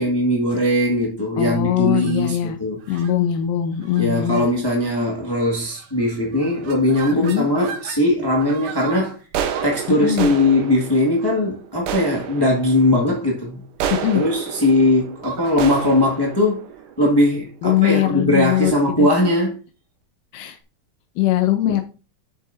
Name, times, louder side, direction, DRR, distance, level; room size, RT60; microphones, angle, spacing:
voice 1, 0.0-3.0 4.0-9.2 9.6-13.6 14.1-16.6 17.0-19.6, left 1 dB, 15° left, 0.7 m, -19 dB
voice 2, 1.4-2.6 2.9-4.5 7.1-7.5 10.0-10.3 13.9-14.2 17.6-18.7 19.0-19.1 20.3-20.6 21.2-21.8, left 12 dB, 90° left, 2.4 m, -21 dB
sound 1, 1.9-2.3 2.9-3.1 3.8-4.0 4.3-4.4 4.8-5.1 5.7-6.0 6.3-8.0 8.4-17.6, right 8 dB, 80° right, 2.5 m, -32 dB
9.4 x 7.7 x 2.7 m
omnidirectional pair, 3.8 m